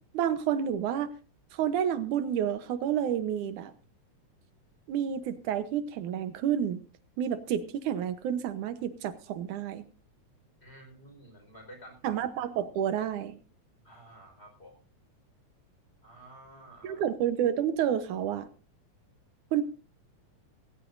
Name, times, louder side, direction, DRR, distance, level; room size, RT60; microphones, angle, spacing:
voice 1, 0.1-1.1 1.5-3.7 4.9-6.8 7.2-9.8 12.0-13.4 16.8-18.5 19.5-19.6, right 9 dB, 85° right, 11 dB, 2.6 m, -29 dB
voice 2, 10.6-12.1 13.8-14.8 16.0-17.0, right 1 dB, 20° left, 3 dB, 5.3 m, -51 dB
18.0 x 18.0 x 2.7 m, 0.34 s
omnidirectional pair, 3.4 m